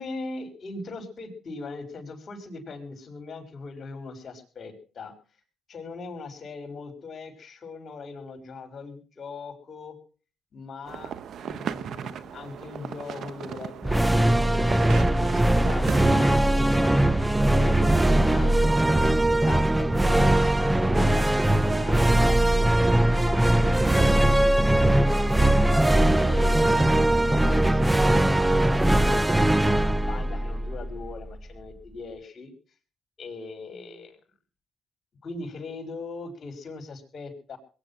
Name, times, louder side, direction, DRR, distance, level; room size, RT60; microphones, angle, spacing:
voice 1, 0.0-5.1 5.7-10.0 10.5-11.1 11.4-14.8 15.1-21.3 21.6-24.5 25.3-29.3 29.6-32.5 33.2-34.2 35.2-37.6, left 3 dB, 50° left, 7 dB, 6.0 m, -40 dB
sound 1, 10.9-16.4, right 8 dB, 65° right, 1.2 m, -37 dB
sound 2, 13.8-31.3, right 1 dB, 10° right, 0.8 m, -21 dB
21.5 x 10.0 x 6.0 m, 0.39 s
cardioid pair, 90°, 0 cm